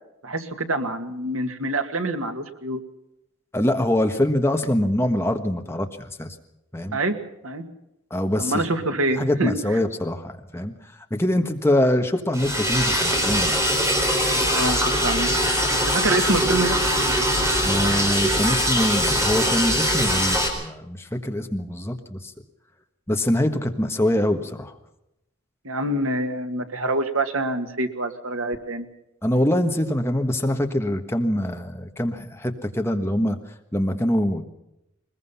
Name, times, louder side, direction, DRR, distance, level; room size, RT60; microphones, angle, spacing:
voice 1, 0.2-2.8 6.9-7.2 7.4-7.7 8.4-9.5 14.5-15.3 15.9-16.8 25.6-28.9, right 2 dB, 90° right, 6 dB, 2.0 m, -26 dB
voice 2, 3.5-6.4 6.7-7.0 8.1-8.6 9.1-10.7 11.1-13.6 17.6-22.3 23.1-24.7 29.2-33.4 33.7-34.4, left 1 dB, 10° left, 5 dB, 1.4 m, -24 dB
Liquid, 12.3-20.5, equal, 15° right, 4.1 m, -22 dB
21.5 x 21.0 x 5.7 m, 0.86 s
head